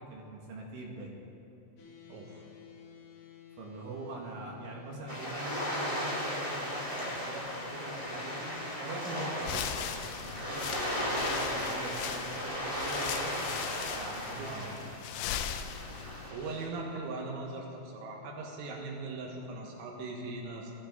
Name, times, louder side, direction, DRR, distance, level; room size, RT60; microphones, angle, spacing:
voice 1, 0.1-1.2 3.6-13.3 14.0-14.7, right 2 dB, 70° right, -2 dB, 4.3 m, -43 dB
sound 1, 1.8-19.3, left 6 dB, 60° left, 1.8 m, -54 dB
voice 2, 2.1-2.4 14.3-14.7 16.3-20.7, right 3 dB, 90° right, -1 dB, 4.1 m, -40 dB
sound 2, 5.1-16.7, equal, 15° right, 1.3 m, -36 dB
sound 3, 9.4-16.3, left 9 dB, 85° left, 3.2 m, -39 dB
22.5 x 13.0 x 3.9 m, 2.8 s
omnidirectional pair, 5.8 m